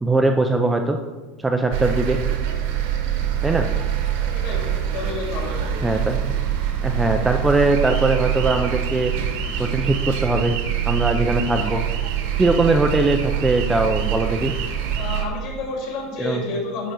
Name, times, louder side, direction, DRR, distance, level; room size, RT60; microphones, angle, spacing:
voice 1, 0.0-1.0 1.4-2.2 3.4-3.7 5.8-6.2 6.8-9.1 9.6-10.6 10.8-11.8 12.4-14.5 16.2-16.4, right 2 dB, 5° right, 4 dB, 0.4 m, -20 dB
sound 1, 1.7-15.2, right 10 dB, 60° right, 1.2 m, -24 dB
voice 2, 4.4-5.7 14.9-16.9, left 3 dB, 45° left, 0 dB, 2.4 m, -30 dB
10.0 x 3.9 x 6.4 m, 1.3 s
supercardioid pair, 175°, 0 cm